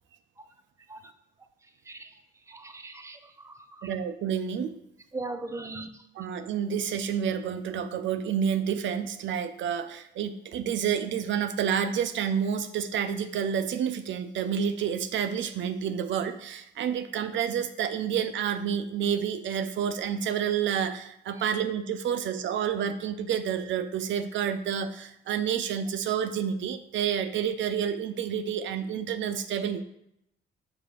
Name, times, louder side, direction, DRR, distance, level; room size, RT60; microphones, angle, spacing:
voice 1, 2.5-3.9 5.1-5.9, right 2 dB, 15° right, 7 dB, 0.7 m, -39 dB
voice 2, 3.8-4.8 6.2-29.8, right 8 dB, 70° right, 10 dB, 0.6 m, -29 dB
5.8 x 4.7 x 5.1 m, 0.77 s
cardioid pair, 90°, 20 cm